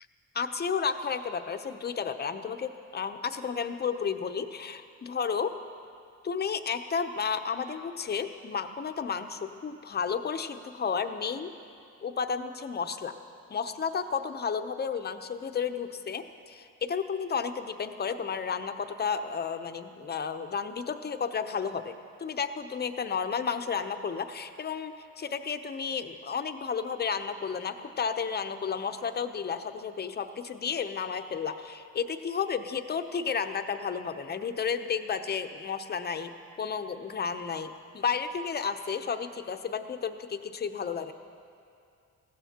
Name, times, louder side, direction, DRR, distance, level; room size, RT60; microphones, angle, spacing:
voice 1, 0.3-5.6 6.2-11.5 12.0-13.1 13.5-41.1, left 6 dB, 35° left, 8 dB, 0.7 m, -32 dB
19.5 x 15.0 x 2.9 m, 2.5 s
cardioid pair, 90°, 30 cm